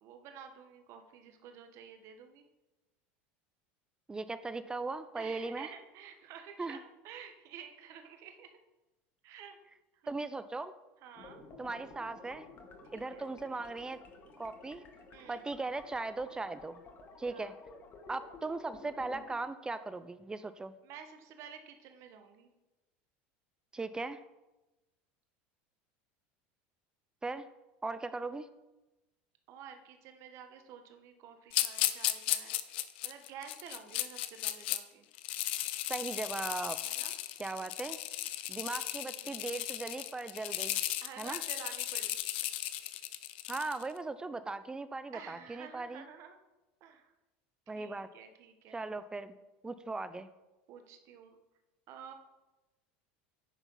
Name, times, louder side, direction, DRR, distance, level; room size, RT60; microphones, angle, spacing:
voice 1, 0.0-2.4 5.2-8.6 9.2-9.6 9.9-10.0 11.0-11.4 12.9-13.3 15.1-15.4 17.3-17.5 20.8-22.5 29.5-32.5 33.0-35.1 36.8-37.2 38.7-39.5 41.0-42.2 45.1-46.4 46.8-47.1 47.7-48.9 50.7-51.4 51.9-52.1, right 7 dB, 55° right, 6 dB, 1.2 m, -51 dB
voice 2, 4.1-5.7 6.6-6.8 10.1-10.7 11.6-12.5 12.9-14.0 14.4-14.8 15.3-16.8 17.2-17.6 18.1-20.7 23.7-24.2 27.2-27.5 27.8-28.5 35.9-36.8 37.4-38.0 38.5-40.8 41.2-41.4 43.5-46.0 47.7-48.1 48.7-49.3 49.6-50.3, right 3 dB, 15° right, 13 dB, 0.5 m, -38 dB
sound 1, 11.1-19.3, left 3 dB, 40° left, 1.5 m, -53 dB
sound 2, 31.5-34.8 35.2-43.8, left 14 dB, 80° left, 0.6 m, -35 dB
9.8 x 4.5 x 5.5 m, 1.0 s
supercardioid pair, 110°, 6 cm